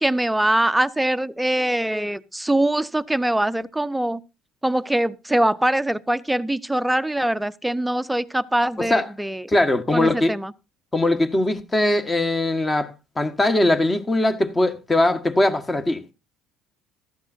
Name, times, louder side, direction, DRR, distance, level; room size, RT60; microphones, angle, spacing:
voice 1, 0.0-4.2 4.6-9.5 9.9-10.5, right 1 dB, 5° right, 0.6 m, -23 dB
voice 2, 9.5-10.3 10.9-12.9 13.2-16.1, left 1 dB, 20° left, 1.3 m, -20 dB
15.5 x 12.0 x 2.6 m
supercardioid pair, 75°, 0 cm